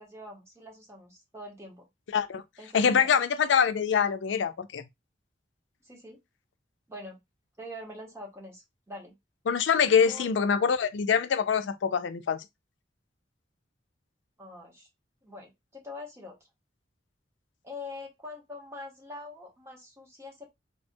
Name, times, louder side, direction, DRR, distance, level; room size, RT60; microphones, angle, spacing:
voice 1, 0.0-1.9 2.6-3.1 5.8-6.2 6.9-7.2 7.6-9.1 10.0-10.3 14.4-14.9 15.2-16.4 17.6-20.5, left 2 dB, 15° right, 1.0 m, -44 dB
voice 2, 2.7-4.8 9.5-12.4, left 6 dB, 80° left, 0.4 m, -24 dB
3.4 x 2.2 x 2.6 m
head